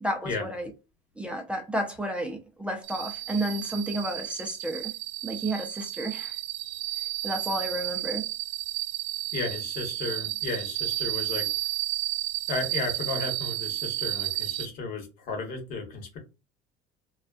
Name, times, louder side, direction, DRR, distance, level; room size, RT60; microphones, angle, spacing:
voice 1, 0.0-0.7 1.2-4.9 5.2-6.4 7.2-8.3, right 1 dB, 5° right, 0.5 m, -31 dB
sound 1, 2.8-14.7, right 16 dB, 70° right, 0.4 m, -32 dB
voice 2, 9.3-11.5 12.5-16.2, left 3 dB, 55° left, 1.1 m, -34 dB
2.3 x 2.3 x 2.4 m
supercardioid pair, 110°, 17 cm